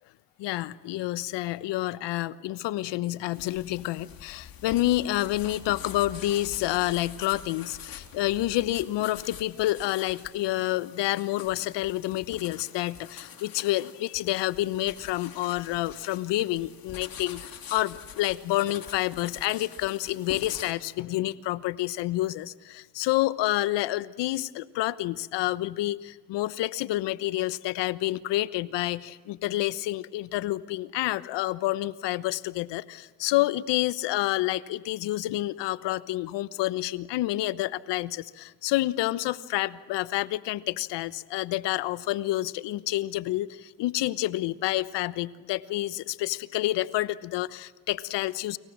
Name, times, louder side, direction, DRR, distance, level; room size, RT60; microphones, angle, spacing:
voice 1, 0.4-48.6, left 16 dB, 70° left, 16 dB, 1.1 m, -28 dB
sound 1, 3.3-20.7, left 8 dB, 50° left, 3.3 m, -45 dB
30.0 x 25.5 x 7.5 m, 1.3 s
hypercardioid pair, 60°, 44 cm